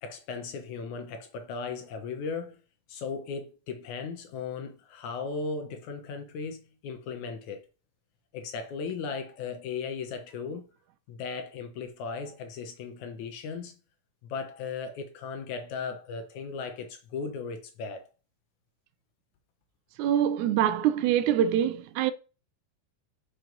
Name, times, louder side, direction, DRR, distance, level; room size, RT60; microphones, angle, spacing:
voice 1, 0.0-2.6 2.9-7.6 8.3-10.6 11.1-13.8 14.2-18.1, left 5 dB, 70° left, 2.2 m, -37 dB
voice 2, 20.0-22.1, right 10 dB, 80° right, 1.8 m, -24 dB
6.2 x 4.8 x 5.2 m
omnidirectional pair, 3.6 m